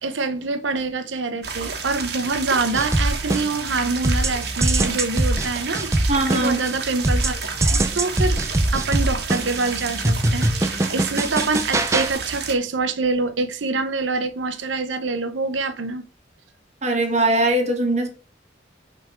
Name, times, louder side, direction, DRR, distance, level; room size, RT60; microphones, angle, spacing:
voice 1, 0.0-8.4 8.7-16.0, right 3 dB, 90° right, 0.8 m, -25 dB
sound 1, 1.4-12.5, right 5 dB, 60° right, 1.2 m, -31 dB
sound 2, 2.7-3.7 4.0-6.7 7.0-12.1, right 1 dB, 15° right, 0.5 m, -22 dB
voice 2, 6.1-6.6 16.8-18.1, right 2 dB, 35° right, 1.3 m, -20 dB
5.9 x 3.6 x 5.9 m
head